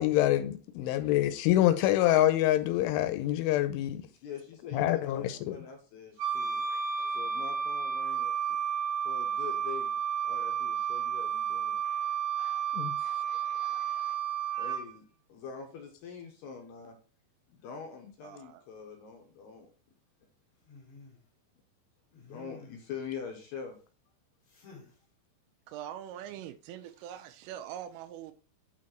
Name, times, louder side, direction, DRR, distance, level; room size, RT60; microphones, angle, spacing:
voice 1, 0.0-4.0 4.7-5.6 12.7-13.0, left 13 dB, 85° left, 3.1 m, -26 dB
voice 2, 0.8-1.1 4.2-8.3 9.0-9.9 10.2-12.7 13.0-14.2 14.6-15.0 15.3-17.0 17.5-19.7 22.2-23.8, left 6 dB, 70° left, 2.8 m, -45 dB
Wind instrument woodwind instrument, 6.2-14.9, right 8 dB, 70° right, 2.5 m, -32 dB
voice 3, 18.2-18.6 25.7-28.3, right 10 dB, 90° right, 3.3 m, -43 dB
sound 1, 20.6-21.2 22.1-23.0 24.5-25.0 26.9-27.3, left 4 dB, 35° left, 2.5 m, -53 dB
8.8 x 4.3 x 4.4 m
omnidirectional pair, 5.6 m